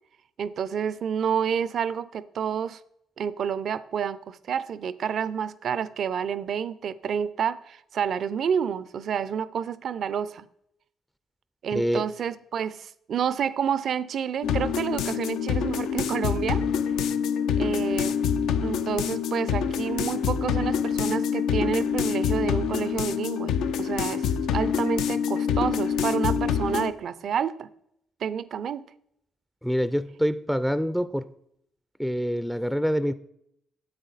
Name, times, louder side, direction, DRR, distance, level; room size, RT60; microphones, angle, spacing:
voice 1, 0.4-2.8 3.2-10.5 11.6-16.6 17.6-18.2 18.6-27.7 28.2-28.9, right 8 dB, 65° right, 0.5 m, -29 dB
voice 2, 11.7-12.0 29.6-31.3 32.0-33.1, equal, ahead, 0.4 m, -26 dB
sound 1, 14.4-26.9, left 7 dB, 80° left, 0.5 m, -26 dB
9.6 x 7.8 x 4.1 m
supercardioid pair, 60°, 0 cm